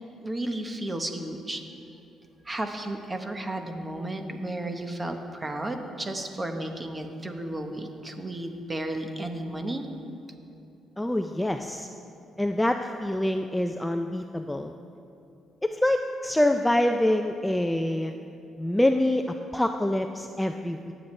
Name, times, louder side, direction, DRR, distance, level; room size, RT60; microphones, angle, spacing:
voice 1, 0.2-1.6 2.4-9.9, right 1 dB, 20° right, 5 dB, 1.0 m, -33 dB
voice 2, 11.0-11.9 12.4-14.7 15.6-18.1 18.6-20.9, left 1 dB, 10° left, 6 dB, 0.4 m, -25 dB
19.0 x 7.9 x 3.2 m, 2.7 s
cardioid pair, 90°, 0 cm